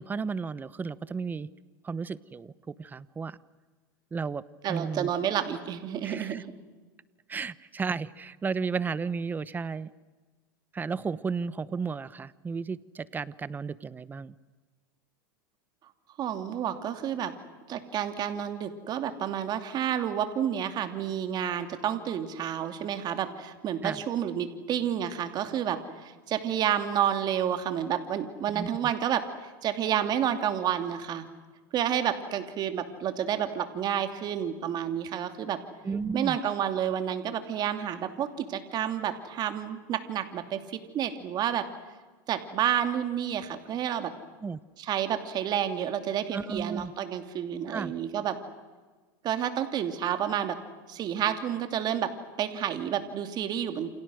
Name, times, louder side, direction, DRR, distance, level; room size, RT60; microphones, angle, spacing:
voice 1, 0.0-1.5 1.8-3.4 4.1-4.4 4.7-5.1 6.0-6.4 7.3-9.9 10.7-14.3 23.8-24.0 28.5-28.7 35.8-36.4 44.4-44.6 46.3-46.9 47.7-47.9, right 5 dB, 15° right, 18 dB, 0.9 m, -33 dB
voice 2, 4.6-6.5 16.2-17.3 17.7-31.3 31.7-35.6 36.1-41.7 42.3-44.1 44.8-48.4 49.2-50.6 50.9-52.1 52.4-54.0, right 9 dB, 40° right, 8 dB, 2.7 m, -30 dB
28.5 x 28.0 x 6.4 m, 1.3 s
supercardioid pair, 120°, 11 cm